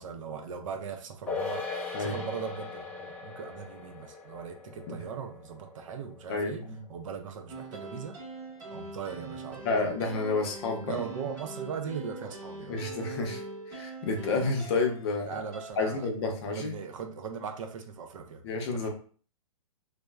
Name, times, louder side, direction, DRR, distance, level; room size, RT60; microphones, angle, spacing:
voice 1, 0.0-1.6 2.0-8.2 8.7-9.6 10.8-12.8 15.3-16.1 16.5-18.4 18.7-18.9, right 6 dB, 65° right, 6 dB, 0.5 m, -39 dB
sound 1, 1.3-7.9 8.2-8.3, left 4 dB, 5° left, 0.4 m, -40 dB
voice 2, 6.3-6.8 9.6-11.0 12.7-13.4 13.7-15.3 15.8-16.7 18.4-18.9, left 3 dB, 45° left, 3 dB, 0.6 m, -30 dB
sound 2, 7.5-15.7, right 2 dB, 20° right, 0.8 m, -43 dB
2.9 x 2.0 x 2.2 m, 0.43 s
hypercardioid pair, 140°, 18 cm